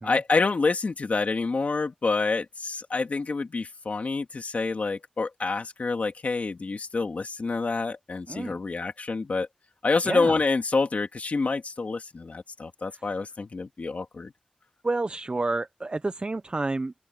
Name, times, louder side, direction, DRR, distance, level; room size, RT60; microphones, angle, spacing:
voice 1, 0.0-9.5 9.8-14.3, left 4 dB, 70° left, 2.8 m, -27 dB
voice 2, 8.3-8.6 10.0-10.4 14.8-16.9, right 2 dB, 40° right, 0.7 m, -29 dB
open air
wide cardioid pair, 60°, 3 cm